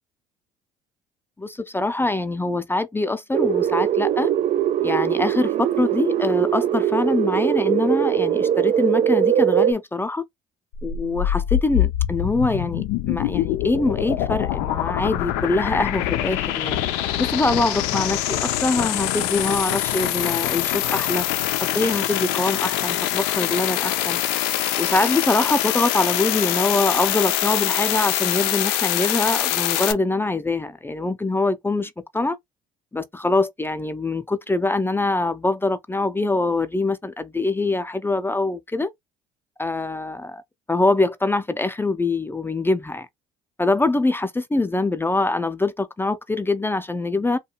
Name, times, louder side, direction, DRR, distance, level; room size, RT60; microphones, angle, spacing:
voice 1, 1.4-4.3 4.8-10.2 10.8-16.8 17.2-21.3 21.6-24.2 24.8-32.4 32.9-38.9 39.6-40.4 40.7-43.1 43.6-47.4, left 2 dB, 15° left, 0.5 m, -24 dB
sound 1, 3.3-9.7, right 10 dB, 45° right, 0.4 m, -21 dB
sound 2, 10.7-29.9, left 12 dB, 75° left, 0.4 m, -24 dB
2.6 x 2.2 x 2.8 m
hypercardioid pair, 65°, 17 cm